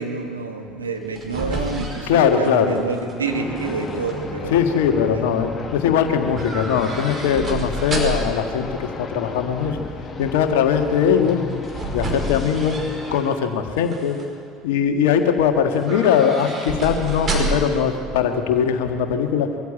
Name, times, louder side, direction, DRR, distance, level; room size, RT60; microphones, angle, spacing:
voice 1, 0.0-5.2, right 4 dB, 85° right, 4 dB, 1.7 m, -28 dB
sound 1, 0.9-3.2 3.6-4.1 6.3-8.4 11.2-13.4 13.8-14.3 15.7-17.8 18.1-18.2, right 2 dB, 30° right, 5.3 m, -29 dB
voice 2, 2.1-2.8 4.5-9.8 10.2-11.4 11.9-12.8 13.1-14.2 14.6-19.5, left 7 dB, 65° left, 6 dB, 1.7 m, -20 dB
sound 2, 3.2-13.2, left 3 dB, 25° left, 2.4 m, -34 dB
23.0 x 14.5 x 8.8 m, 2.4 s
figure-of-eight pair, 65°, 0 cm